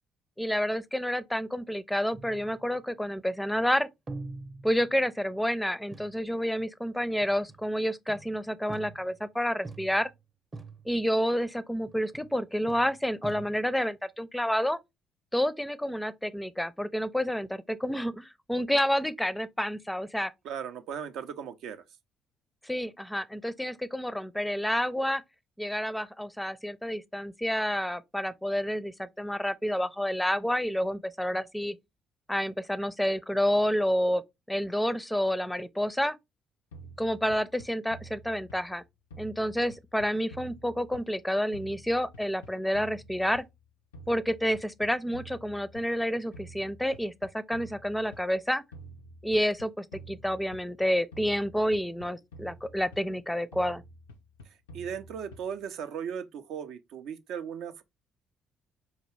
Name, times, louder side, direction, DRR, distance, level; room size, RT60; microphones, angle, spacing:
voice 1, 0.4-3.9 4.6-10.1 10.9-14.8 15.3-20.3 22.6-25.2 25.6-31.8 32.3-36.2 37.0-38.8 39.2-43.4 44.1-48.6 49.2-53.8, equal, 5° left, 0.4 m, -29 dB
sound 1, 2.1-3.0 4.1-5.3 5.9-6.2 7.2-7.7 8.1-9.3 9.6-10.2 10.5-11.1 11.9-12.4 12.7-13.9, right 3 dB, 35° right, 0.7 m, -45 dB
voice 2, 20.4-21.8 54.7-57.8, right 8 dB, 65° right, 0.4 m, -37 dB
sound 2, 36.7-38.8 39.1-41.3 41.5-43.6 43.9-46.0 46.3-48.3 48.7-50.8 51.1-53.2 53.5-55.6, right 1 dB, 85° left, 0.4 m, -49 dB
4.5 x 2.3 x 3.1 m
hypercardioid pair, 45°, 0 cm